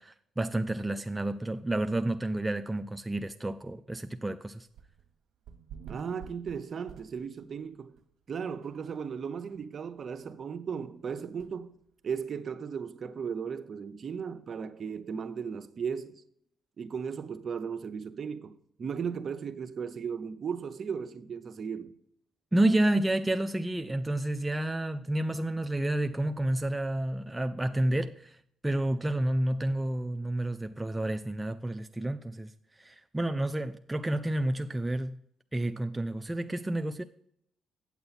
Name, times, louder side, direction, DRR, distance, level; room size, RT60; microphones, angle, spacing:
voice 1, 0.0-4.7 22.5-28.4 28.6-35.2 35.5-37.0, right 1 dB, 10° right, 0.3 m, -30 dB
sound 1, 4.7-5.1 5.5-7.6 8.0-8.1 8.6-8.7 9.0-9.1 9.5-9.6 11.4-11.5, right 7 dB, 75° right, 0.9 m, -48 dB
voice 2, 5.9-8.0 8.3-11.7 12.0-16.2 16.8-21.9, right 6 dB, 50° right, 0.7 m, -36 dB
8.8 x 7.0 x 4.1 m
cardioid pair, 90°, 0 cm